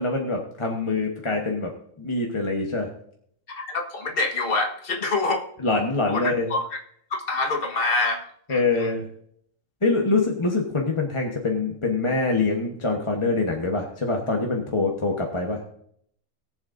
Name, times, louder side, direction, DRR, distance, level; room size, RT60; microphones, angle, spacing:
voice 1, 0.0-1.7 2.0-2.9 5.6-6.5 8.5-9.1 9.8-15.6, left 3 dB, 25° left, 0 dB, 1.2 m, -24 dB
voice 2, 3.5-5.4 6.1-6.8 7.1-8.9, left 3 dB, 45° left, 2 dB, 1.6 m, -26 dB
21.0 x 7.6 x 2.6 m, 0.67 s
omnidirectional pair, 1.4 m